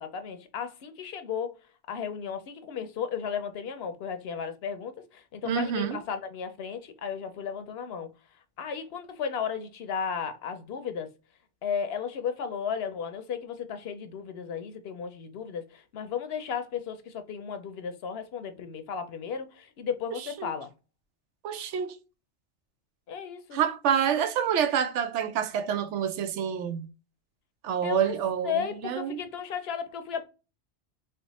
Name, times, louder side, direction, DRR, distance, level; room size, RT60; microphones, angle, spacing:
voice 1, 0.0-1.5 1.9-8.1 8.6-11.1 11.6-20.7 23.1-23.6 27.8-28.1 28.4-30.3, left 7 dB, 65° left, 0.8 m, -34 dB
voice 2, 5.4-6.0 20.4-20.5 21.4-22.0 23.5-26.9 27.6-29.2, right 8 dB, 85° right, 0.9 m, -27 dB
3.3 x 2.1 x 4.0 m
omnidirectional pair, 1.2 m